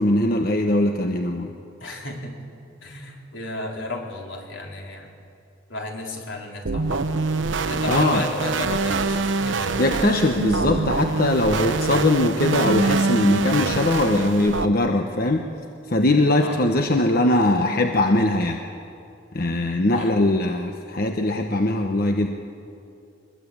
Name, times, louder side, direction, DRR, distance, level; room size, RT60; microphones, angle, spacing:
voice 1, 0.0-1.5 7.9-8.2 9.8-15.5 15.9-18.6 19.3-22.3, left 1 dB, 50° left, 4 dB, 1.1 m, -21 dB
voice 2, 1.8-2.5 2.8-5.1 5.7-7.1 7.7-9.8 16.4-16.9 19.9-20.2, left 1 dB, 80° left, 0 dB, 4.1 m, -33 dB
sound 1, 6.7-14.7, right 3 dB, 75° right, 0.9 m, -24 dB
23.0 x 21.0 x 8.7 m, 2.7 s
head